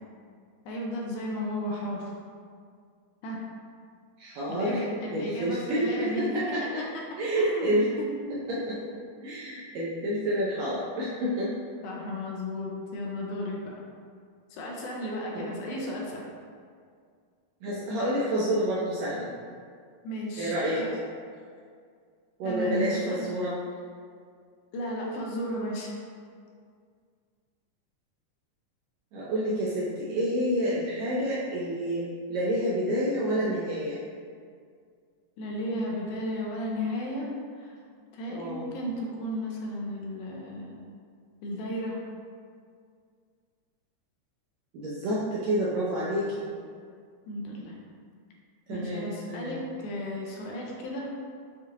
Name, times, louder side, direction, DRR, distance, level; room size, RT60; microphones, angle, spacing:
voice 1, 0.6-2.1 3.2-3.4 4.5-6.4 7.1-7.7 11.8-13.8 14.5-16.2 20.0-20.5 20.8-20.9 22.4-23.2 24.7-25.9 35.4-37.7 38.1-40.8 41.4-42.0 47.3-47.8 48.7-51.1, left 1 dB, 80° left, -2 dB, 2.0 m, -34 dB
voice 2, 4.2-4.8 5.1-6.8 7.2-7.9 8.3-8.8 9.2-11.5 15.3-15.5 17.6-19.3 20.4-20.8 22.4-23.5 29.1-34.0 38.3-38.6 44.7-46.4 48.7-49.6, equal, 80° right, -7 dB, 1.6 m, -29 dB
6.4 x 2.4 x 2.7 m, 2.1 s
omnidirectional pair, 3.6 m